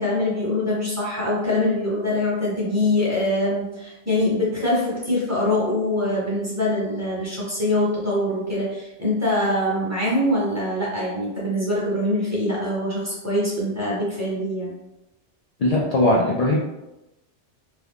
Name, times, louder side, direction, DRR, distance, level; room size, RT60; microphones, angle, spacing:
voice 1, 0.0-14.7, left 1 dB, 15° right, -7 dB, 0.9 m, -23 dB
voice 2, 15.6-16.6, left 1 dB, 65° left, -3 dB, 0.3 m, -19 dB
2.9 x 2.3 x 3.5 m, 0.96 s
omnidirectional pair, 1.2 m